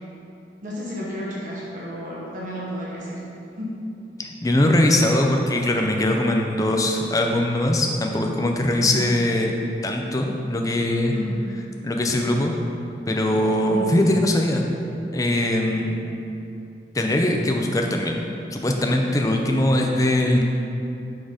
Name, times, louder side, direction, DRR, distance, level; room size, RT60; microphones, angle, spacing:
voice 1, 0.6-3.2 3.6-3.8 8.8-9.0 11.1-11.4 13.6-13.9, left 1 dB, 45° right, -6 dB, 0.9 m, -31 dB
voice 2, 4.2-9.5 9.8-11.1 11.8-12.5 13.1-14.7 15.1-16.0 16.9-18.2 18.5-20.4, left 1 dB, 20° left, 2 dB, 0.4 m, -21 dB
6.1 x 3.8 x 4.9 m, 2.7 s
head